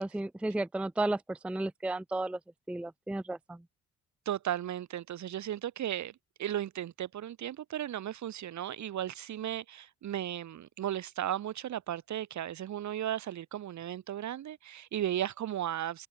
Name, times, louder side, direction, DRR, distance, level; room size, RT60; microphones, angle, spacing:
voice 1, 0.0-2.4 2.7-3.6, right 2 dB, 5° right, 0.5 m, -33 dB
voice 2, 4.2-16.1, right 11 dB, 70° right, 3.0 m, -35 dB
open air
cardioid pair, 90°, 30 cm